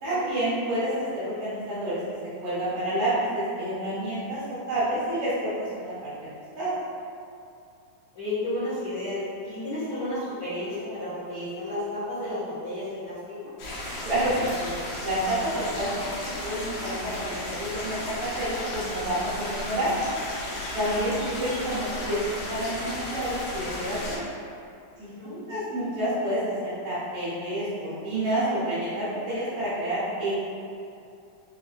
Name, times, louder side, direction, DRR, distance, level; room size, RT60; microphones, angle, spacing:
voice 1, 0.0-6.3 6.6-6.8 14.0-14.7 15.0-20.0 20.7-24.2 25.0-30.4, right 1 dB, 70° right, -10 dB, 1.4 m, -29 dB
voice 2, 8.1-13.2 13.4-13.5 25.0-25.4, left 1 dB, 60° left, -16 dB, 1.1 m, -32 dB
sound 1, 13.6-24.2, left 1 dB, 85° left, 2.4 m, -34 dB
5.3 x 2.6 x 2.4 m, 2.5 s
omnidirectional pair, 3.7 m